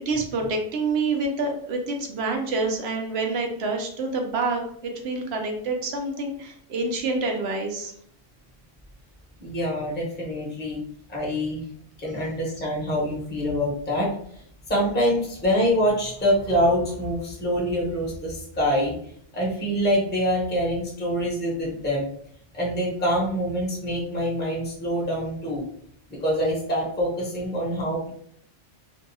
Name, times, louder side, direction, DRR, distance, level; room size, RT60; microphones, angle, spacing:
voice 1, 0.1-7.9, right 3 dB, 65° right, 2 dB, 0.8 m, -27 dB
voice 2, 9.4-10.8 11.1-11.6 12.0-19.0 19.3-22.1 22.5-25.6 26.1-28.1, equal, 10° left, -5 dB, 0.7 m, -25 dB
2.6 x 2.3 x 2.7 m, 0.63 s
omnidirectional pair, 1.3 m